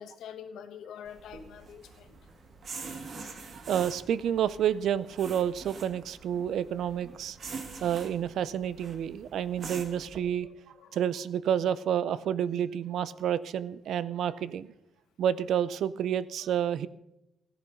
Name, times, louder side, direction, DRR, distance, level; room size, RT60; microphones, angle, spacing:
voice 1, 0.0-2.2 3.6-3.7 10.4-11.2, left 8 dB, 90° left, 8 dB, 1.3 m, -46 dB
sound 1, 1.0-10.2, right 4 dB, 40° right, 1.5 m, -45 dB
voice 2, 3.7-7.4 7.8-10.5 10.9-14.7 15.2-16.9, right 9 dB, 70° right, 18 dB, 0.5 m, -29 dB
16.0 x 11.0 x 5.2 m, 0.88 s
cardioid pair, 165°, 0 cm